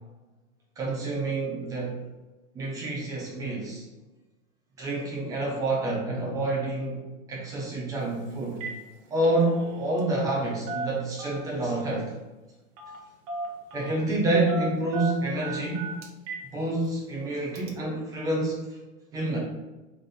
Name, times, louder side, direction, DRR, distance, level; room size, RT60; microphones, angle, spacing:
voice 1, 0.8-2.0 2.5-3.9 4.8-7.0 7.3-8.6 9.1-12.1 13.7-16.0 16.5-18.8 19.1-19.4, right 2 dB, 10° right, -4 dB, 0.5 m, -28 dB
Telephone, 8.0-8.2 8.5-8.8 9.1-10.4 10.7-11.6 12.8-13.0 13.3-14.0 14.5-16.5 16.8-16.9 17.6-17.7, right 3 dB, 90° right, 1.1 m, -36 dB
3.7 x 3.4 x 4.0 m, 1.1 s
supercardioid pair, 180°, 38 cm